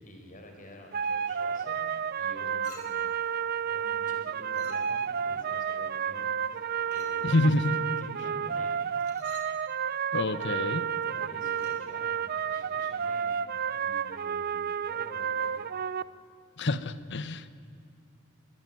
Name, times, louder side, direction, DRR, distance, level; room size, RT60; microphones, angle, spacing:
voice 1, 0.0-1.8 2.2-8.8 10.3-10.6 11.0-13.4 13.7-15.7, left 1 dB, 40° left, 3 dB, 4.7 m, -50 dB
sound 1, 0.9-16.0, right 7 dB, 45° right, 0.5 m, -31 dB
Chink clink, 2.6-3.2 4.5-5.2 6.9-7.3 9.0-9.6 11.5-11.9, left 4 dB, 90° left, 4.8 m, -50 dB
voice 2, 7.2-7.7 10.1-10.8 16.6-17.5, left 2 dB, 55° left, 14 dB, 1.1 m, -27 dB
22.5 x 20.5 x 9.4 m, 2.5 s
head